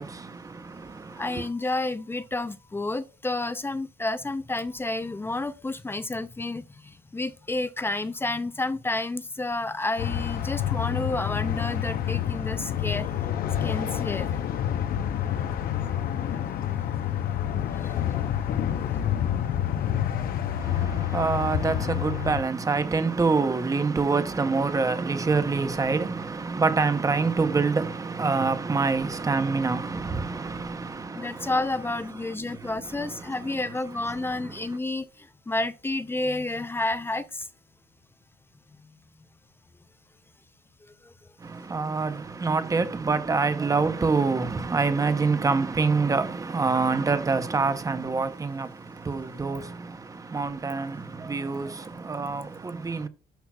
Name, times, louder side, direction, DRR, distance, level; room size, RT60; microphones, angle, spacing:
voice 1, 0.0-1.5 20.6-31.5 32.5-33.5 34.2-34.6 41.4-53.1, right 4 dB, 20° right, 0.8 m, -26 dB
voice 2, 1.2-6.6 7.1-13.1 13.6-14.3 15.5-15.6 16.7-16.8 17.8-18.2 18.8-18.9 20.2-20.3 31.1-35.1 35.5-37.5 46.1-46.2, left 2 dB, 15° left, 0.5 m, -30 dB
sound 1, 10.0-22.4, left 10 dB, 60° left, 0.8 m, -28 dB
10.0 x 5.7 x 2.3 m
cardioid pair, 110°, 17 cm